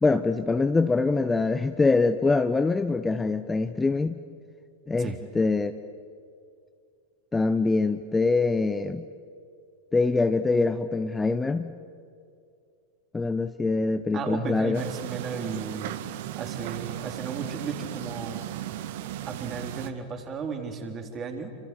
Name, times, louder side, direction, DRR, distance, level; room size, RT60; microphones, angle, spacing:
voice 1, 0.0-4.2 4.9-5.7 7.3-9.0 9.9-11.8 13.1-14.8, left 3 dB, 10° left, 10 dB, 0.8 m, -24 dB
voice 2, 14.1-15.9 16.4-18.4 19.3-21.5, right 5 dB, 25° right, 5 dB, 3.6 m, -34 dB
sound 1, 14.7-19.9, right 12 dB, 50° right, 1.4 m, -36 dB
29.0 x 26.0 x 7.7 m, 2.3 s
figure-of-eight pair, 90°, 0 cm